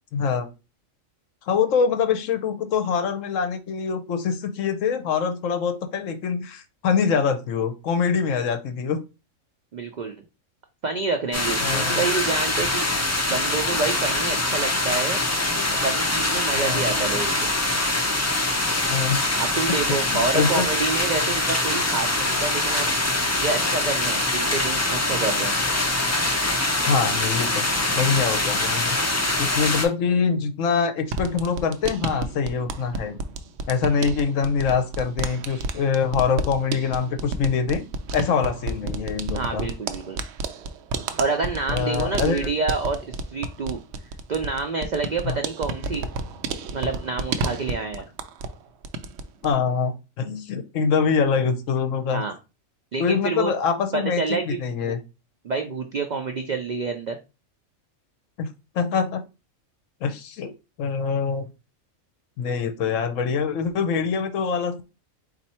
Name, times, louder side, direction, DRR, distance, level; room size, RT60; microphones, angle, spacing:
voice 1, 0.1-0.5 1.5-9.0 11.6-12.0 16.5-16.9 18.9-19.2 19.9-20.7 26.9-29.0 29.4-33.2 33.7-37.8 38.1-39.7 41.7-42.5 45.2-45.4 49.4-52.2 53.0-54.2 54.5-55.0 58.4-58.5 58.7-59.2 60.0-60.5 60.8-61.5 62.4-64.9, left 6 dB, 70° left, 7 dB, 1.0 m, -24 dB
voice 2, 9.7-10.2 10.8-12.9 13.3-15.2 15.8-17.5 19.4-22.9 23.4-25.5 39.3-40.2 41.2-43.8 44.3-46.1 46.7-48.1 52.1-52.4 52.9-53.5 53.9-55.0 55.4-57.2, right 4 dB, 85° right, 5 dB, 0.4 m, -28 dB
sound 1, 11.3-29.9, left 2 dB, 20° left, 0.4 m, -24 dB
sound 2, 31.0-48.6 48.8-49.5, right 3 dB, 65° right, 0.7 m, -31 dB
4.2 x 2.6 x 4.2 m, 0.29 s
omnidirectional pair, 1.4 m